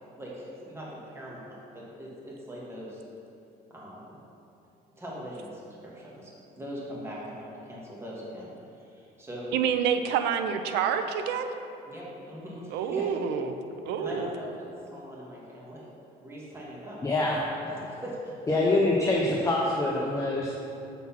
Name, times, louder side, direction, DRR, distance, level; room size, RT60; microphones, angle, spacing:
voice 1, 0.2-3.0 3.7-4.2 5.0-9.5 11.8-13.1 14.0-15.8 16.2-17.0 17.4-18.8 19.4-19.5, equal, 15° right, -5 dB, 1.5 m, -41 dB
voice 2, 9.5-11.5 12.7-13.6 13.8-14.3, right 7 dB, 85° right, 8 dB, 0.5 m, -27 dB
voice 3, 17.0-17.4 18.5-20.7, left 2 dB, 20° left, -3 dB, 0.7 m, -25 dB
7.2 x 4.0 x 5.7 m, 2.7 s
cardioid pair, 110°, 17 cm